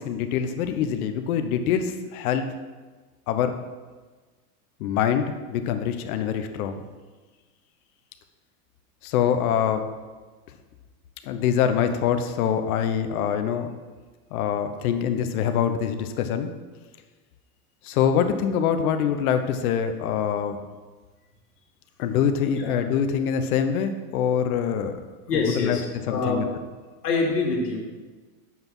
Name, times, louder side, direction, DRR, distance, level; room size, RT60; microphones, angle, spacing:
voice 1, 0.0-2.5 3.3-3.6 4.8-6.8 9.0-9.9 11.2-13.7 14.3-16.5 17.8-20.6 22.0-24.9 25.3-25.8 26.1-26.5, left 8 dB, 70° left, 8 dB, 1.0 m, -24 dB
voice 2, 25.3-26.4 27.0-27.8, left 3 dB, 90° left, 0 dB, 2.4 m, -25 dB
7.8 x 5.6 x 6.1 m, 1.3 s
hypercardioid pair, 115°, 46 cm